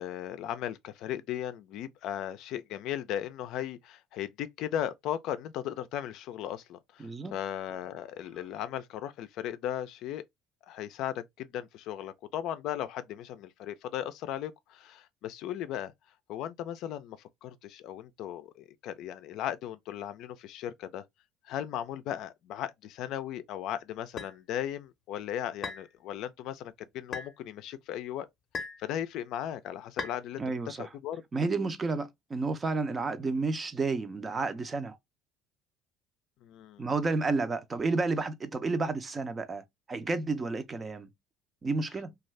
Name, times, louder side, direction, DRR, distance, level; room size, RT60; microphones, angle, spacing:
voice 1, 0.0-10.2 10.7-15.9 16.3-21.0 21.4-28.3 28.8-30.4 30.8-31.2 36.4-36.8, left 11 dB, 65° left, 0.4 m, -37 dB
voice 2, 7.0-7.3 30.4-30.9 31.3-35.0 36.8-41.1 41.6-42.1, right 3 dB, 25° right, 0.5 m, -31 dB
sound 1, 24.2-24.3 25.6-25.9 27.1-27.3 28.5-28.8 30.0-30.2, left 4 dB, 35° left, 0.7 m, -37 dB
2.6 x 2.3 x 3.1 m
cardioid pair, 110°, 0 cm